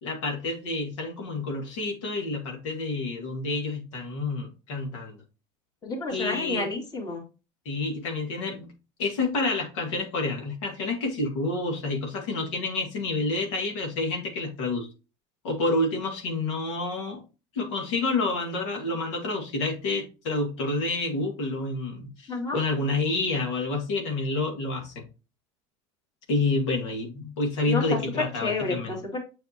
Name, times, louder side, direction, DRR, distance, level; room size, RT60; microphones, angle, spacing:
voice 1, 0.0-5.2 6.1-6.7 7.7-8.7 9.0-14.9 15.4-17.2 17.6-25.0 26.3-29.0, left 2 dB, 90° left, 1 dB, 2.0 m, -29 dB
voice 2, 5.8-7.2 22.3-22.6 27.7-28.0 28.4-29.2, left 3 dB, 25° left, 1 dB, 2.3 m, -30 dB
7.1 x 6.3 x 2.9 m, 0.32 s
supercardioid pair, 120°, 15 cm